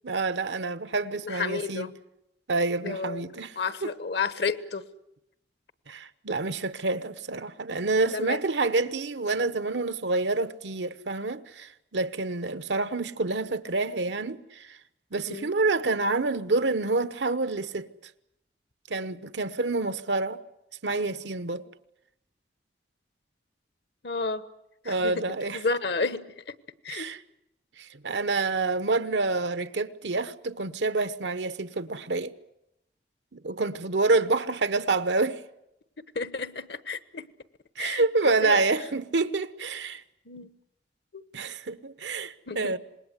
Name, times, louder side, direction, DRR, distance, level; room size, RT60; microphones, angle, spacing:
voice 1, 0.0-1.9 2.5-3.5 3.8-3.9 5.9-14.8 15.1-17.9 18.9-20.4 20.8-21.6 24.9-25.6 26.9-27.2 27.8-32.3 33.3-35.4 37.8-40.0 41.3-42.8, right 3 dB, 90° right, 1.0 m, -28 dB
voice 2, 1.2-1.9 2.8-3.3 3.6-4.9 8.1-8.4 15.3-15.5 19.0-19.1 24.0-24.4 24.8-26.5 26.8-27.1 36.1-37.3 37.8-38.6 40.2-40.5 41.1-41.2 42.5-42.8, left 4 dB, 70° left, 1.2 m, -32 dB
26.5 x 20.5 x 8.1 m
head